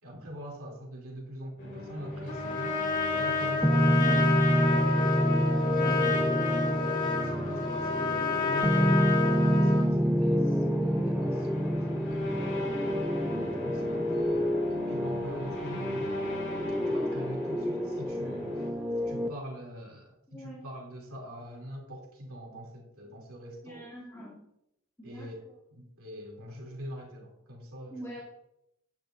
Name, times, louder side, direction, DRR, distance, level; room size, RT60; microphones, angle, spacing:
voice 1, 0.0-2.8 3.1-5.2 5.9-11.7 12.1-12.9 13.6-16.2 16.9-18.7 19.1-23.9 25.0-28.2, equal, 80° right, -1 dB, 2.8 m, -43 dB
sound 1, 1.6-18.7, left 1 dB, 55° left, 2.7 m, -37 dB
Trumpet, 2.3-9.9, left 5 dB, 40° left, 2.2 m, -30 dB
sound 2, 3.6-19.3, equal, 5° right, 0.5 m, -28 dB
voice 2, 5.8-6.2 20.3-20.6 23.6-24.4 25.0-25.3 27.9-28.2, equal, 15° left, -7 dB, 2.2 m, -43 dB
10.5 x 9.9 x 2.5 m, 0.79 s
head